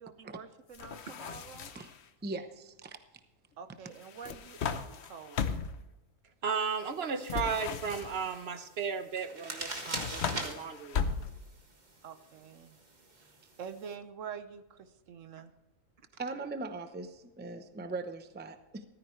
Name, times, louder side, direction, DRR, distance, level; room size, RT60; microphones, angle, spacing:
voice 1, 0.0-1.7 3.6-5.5 12.0-12.8 13.1-15.5, right 7 dB, 70° right, 11 dB, 1.2 m, -47 dB
sound 1, 0.7-2.0 4.0-5.9 7.2-8.4 9.6-11.6, left 6 dB, 60° left, 1.0 m, -37 dB
voice 2, 2.2-3.0 16.2-18.9, right 3 dB, 10° right, 9 dB, 0.6 m, -40 dB
voice 3, 6.4-11.1, right 6 dB, 55° right, 9 dB, 1.1 m, -35 dB
sound 2, 6.5-13.9, right 2 dB, 35° right, 1.6 m, -44 dB
15.0 x 13.5 x 3.2 m, 1.0 s
omnidirectional pair, 1.4 m